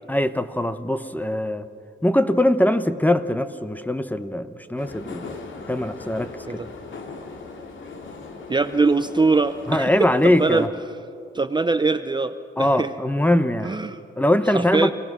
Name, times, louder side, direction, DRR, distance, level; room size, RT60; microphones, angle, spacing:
voice 1, 0.1-1.7 2.0-5.4 5.7-6.6 9.7-10.7 12.6-13.8 14.2-14.9, left 1 dB, 10° left, 11 dB, 1.0 m, -22 dB
sound 1, 4.8-10.7, left 4 dB, 85° left, 2.2 m, -38 dB
voice 2, 8.5-10.7 11.3-12.9 13.6-14.0 14.5-14.9, right 3 dB, 25° right, 10 dB, 0.7 m, -22 dB
28.5 x 17.5 x 6.2 m, 2.5 s
cardioid pair, 70°, 20 cm